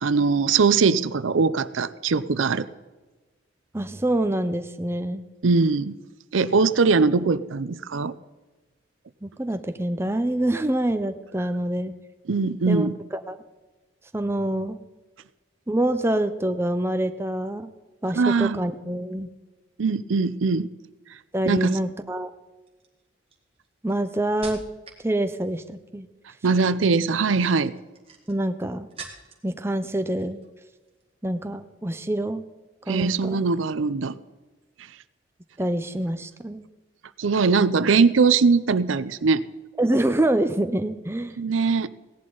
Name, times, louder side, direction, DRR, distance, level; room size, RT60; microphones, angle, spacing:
voice 1, 0.0-2.7 5.4-6.0 6.3-8.1 12.3-12.9 18.1-18.6 19.8-20.7 21.5-21.8 26.4-27.7 32.9-34.1 37.2-39.4 41.4-41.9, right 4 dB, 85° right, 15 dB, 0.6 m, -21 dB
voice 2, 3.7-5.2 9.2-11.9 12.7-13.4 14.1-14.8 15.7-17.7 18.0-19.3 21.3-22.3 23.8-24.6 25.0-26.1 28.3-28.9 29.4-30.4 31.2-32.4 32.9-33.4 35.6-36.6 39.8-41.4, right 1 dB, 10° right, 8 dB, 0.6 m, -26 dB
sound 1, 21.6-22.0 22.7-25.1 25.4-25.9 27.1-29.5 29.8-30.5 30.8-31.0, right 4 dB, 30° right, 1.9 m, -45 dB
17.0 x 11.0 x 3.9 m, 1.2 s
head